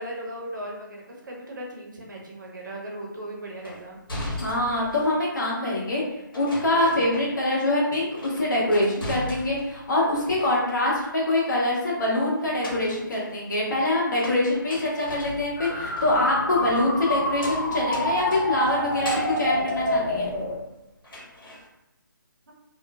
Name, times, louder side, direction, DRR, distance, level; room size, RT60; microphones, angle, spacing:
voice 1, 0.0-4.0 22.5-22.6, right 1 dB, 65° right, -1 dB, 0.8 m, -37 dB
sound 1, 3.6-5.3 6.3-7.6 7.9-9.8 10.1-11.0 12.4-20.7 21.0-21.7, left 1 dB, 80° left, 1.2 m, -39 dB
voice 2, 4.4-6.0 6.3-20.3, left 1 dB, 60° left, -5 dB, 1.1 m, -24 dB
sound 2, 15.6-20.5, left 1 dB, 35° left, 0.8 m, -28 dB
3.0 x 2.0 x 2.3 m, 0.92 s
figure-of-eight pair, 150°, 11 cm